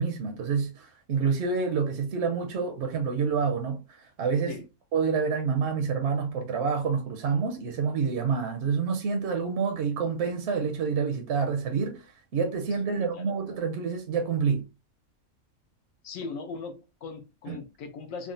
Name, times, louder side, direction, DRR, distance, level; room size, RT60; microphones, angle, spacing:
voice 1, 0.0-4.6 4.9-12.0 12.3-14.7 17.5-17.6, right 5 dB, 60° right, 0.8 m, -28 dB
voice 2, 12.9-13.4 16.0-18.3, left 4 dB, 70° left, 0.9 m, -39 dB
3.7 x 2.1 x 2.5 m
omnidirectional pair, 1.5 m